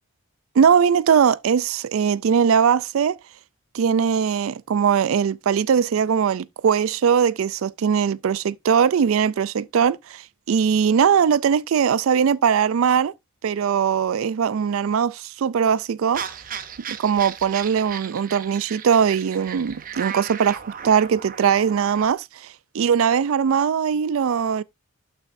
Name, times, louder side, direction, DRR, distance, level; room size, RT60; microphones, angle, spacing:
voice 1, 0.6-3.2 3.7-13.1 13.4-16.2 16.9-22.5 22.7-24.6, right 7 dB, 75° right, 0.4 m, -20 dB
sound 1, 16.1-22.1, right 8 dB, 40° right, 0.7 m, -36 dB
12.0 x 5.9 x 2.6 m
head